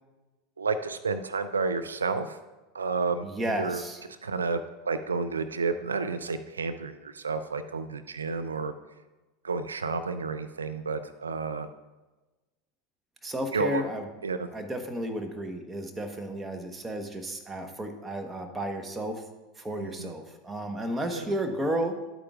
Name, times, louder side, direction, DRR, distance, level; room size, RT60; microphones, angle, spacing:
voice 1, 0.6-2.4 2.7-3.3 3.6-3.8 4.1-8.7 9.4-11.7 13.5-13.8 14.2-14.5 19.8-20.1 21.1-21.2, right 4 dB, 80° right, 10 dB, 0.4 m, -31 dB
voice 2, 3.2-4.0 13.2-14.1 14.5-19.2 19.6-22.0, right 1 dB, 15° right, 5 dB, 1.2 m, -32 dB
11.5 x 8.7 x 2.5 m, 1.1 s
figure-of-eight pair, 80°, 0 cm